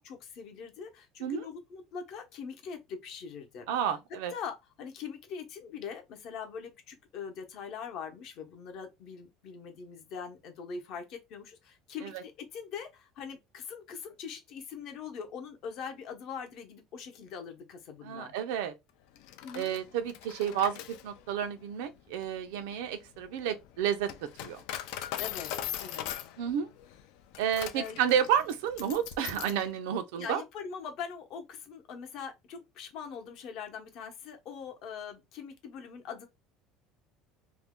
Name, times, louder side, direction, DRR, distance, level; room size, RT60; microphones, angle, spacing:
voice 1, 0.0-3.7 4.3-18.3 19.4-19.8 25.2-25.5 25.8-26.1 27.7-28.0 30.2-36.3, left 6 dB, 50° left, 0.8 m, -42 dB
voice 2, 3.7-4.3 12.0-12.2 18.0-18.7 19.5-24.1 24.4-24.6 26.4-26.7 27.4-30.4, right 9 dB, 90° right, 0.6 m, -31 dB
Coin (dropping), 19.2-29.7, left 11 dB, 70° left, 0.4 m, -41 dB
2.6 x 2.1 x 3.6 m
cardioid pair, 160°, 0 cm